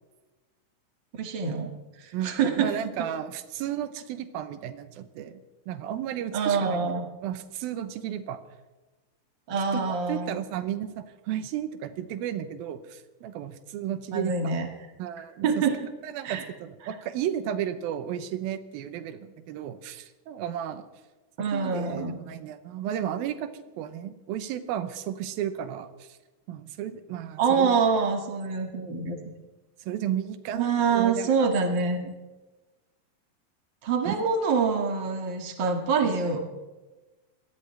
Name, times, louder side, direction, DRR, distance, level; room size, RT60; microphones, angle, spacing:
voice 1, 1.2-1.7 2.0-2.7 6.3-7.0 9.5-10.4 14.1-14.7 15.4-15.8 16.2-16.4 21.4-22.2 27.4-29.2 30.5-32.1 33.8-36.4, right 5 dB, 40° right, 4 dB, 2.1 m, -25 dB
voice 2, 2.1-6.9 7.2-8.4 9.7-14.5 15.0-15.6 16.0-20.9 21.5-26.2 26.5-27.8 29.8-31.5 34.1-34.3, right 10 dB, 90° right, 11 dB, 2.7 m, -33 dB
23.5 x 18.0 x 3.3 m, 1.2 s
omnidirectional pair, 4.1 m